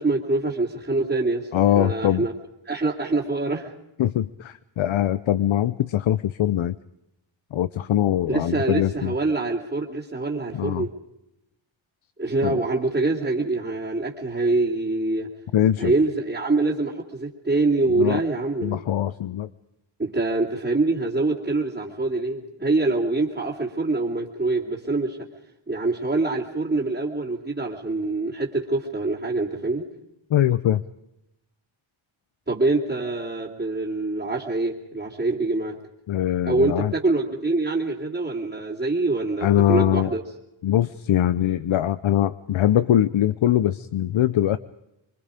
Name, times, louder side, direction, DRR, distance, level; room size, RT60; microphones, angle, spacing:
voice 1, 0.0-2.3 2.6-3.7 8.3-10.9 12.2-15.3 15.8-18.8 20.0-25.2 25.7-29.9 32.5-35.8 36.4-40.2, right 2 dB, 20° right, -6 dB, 3.0 m, -25 dB
voice 2, 1.5-2.3 4.0-6.8 7.5-9.1 10.5-10.8 12.4-12.6 15.5-15.9 18.0-18.2 18.6-19.5 30.3-30.8 36.1-36.9 39.4-40.1 40.6-44.6, left 11 dB, 75° left, 14 dB, 0.7 m, -22 dB
25.5 x 23.5 x 5.1 m, 0.88 s
wide cardioid pair, 100°, 48 cm